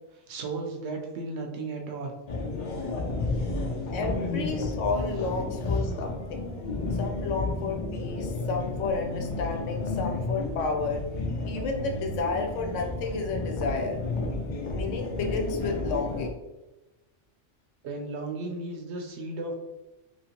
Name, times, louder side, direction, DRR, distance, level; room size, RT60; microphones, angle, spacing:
voice 1, 0.3-2.1 2.6-2.9 3.2-3.5 17.8-19.5, right 3 dB, 70° right, 2 dB, 0.9 m, -35 dB
sound 1, 2.3-16.3, left 2 dB, 55° left, 0.5 m, -32 dB
voice 2, 3.9-6.5 6.9-11.0 11.4-14.0 14.7-16.3, left 4 dB, 85° left, 3 dB, 1.0 m, -31 dB
2.8 x 2.8 x 2.8 m, 1.1 s
omnidirectional pair, 1.2 m